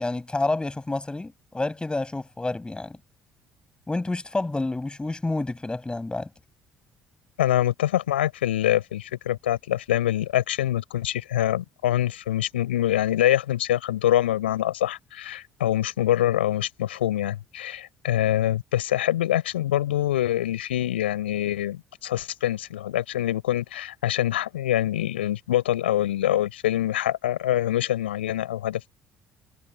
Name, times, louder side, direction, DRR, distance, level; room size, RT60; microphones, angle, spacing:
voice 1, 0.0-3.0 3.9-6.3, left 2 dB, 15° left, 7.9 m, -29 dB
voice 2, 7.4-28.9, left 13 dB, 75° left, 4.8 m, -25 dB
figure-of-eight pair, 50°, 6 cm